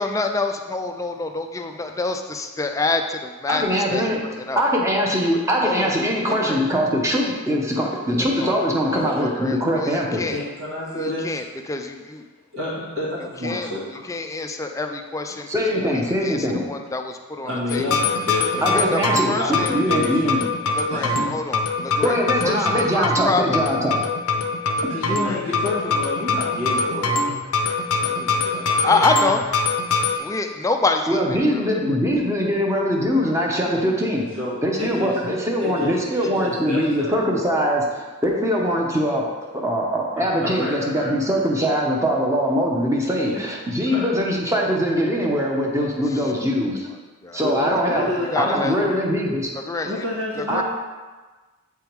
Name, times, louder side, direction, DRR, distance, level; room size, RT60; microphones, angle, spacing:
voice 1, 0.0-4.6 5.6-6.0 6.3-6.6 8.2-8.6 8.9-10.4 10.9-12.3 13.4-17.9 18.7-19.7 20.7-22.2 22.4-23.6 25.1-25.4 28.8-29.4 30.2-32.0 46.0-46.7 47.2-48.8 49.5-50.0 50.4-50.6, left 3 dB, 15° left, 5 dB, 0.3 m, -27 dB
voice 2, 3.5-4.2 4.6-10.2 15.5-16.7 18.6-20.5 22.0-24.0 31.1-34.3 34.6-46.9 47.3-48.1 48.4-49.5 50.5-50.6, equal, 15° right, -1 dB, 0.9 m, -22 dB
voice 3, 10.3-11.3 12.5-14.0 17.5-19.1 19.4-20.4 20.9-21.3 24.9-29.3 34.3-35.2 35.6-37.1 40.2-41.1 43.3-43.4 43.9-44.1 47.4-49.0 49.8-50.6, left 2 dB, 80° right, -6 dB, 1.7 m, -29 dB
sound 1, 17.7-30.2, left 3 dB, 85° left, 0.6 m, -23 dB
8.0 x 3.5 x 4.6 m, 1.3 s
head